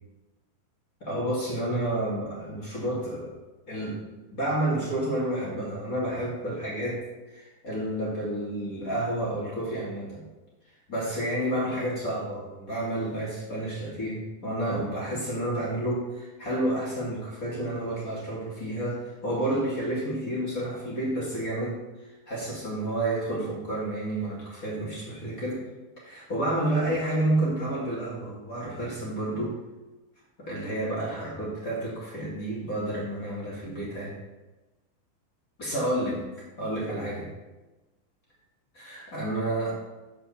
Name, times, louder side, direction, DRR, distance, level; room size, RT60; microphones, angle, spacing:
voice 1, 1.0-3.3 3.7-4.0 4.3-10.2 10.9-25.7 26.0-29.6 30.4-34.2 35.6-36.3 36.6-37.3 38.7-39.7, right 1 dB, 35° left, -6 dB, 1.4 m, -30 dB
7.3 x 5.4 x 7.1 m, 1.1 s
omnidirectional pair, 5.3 m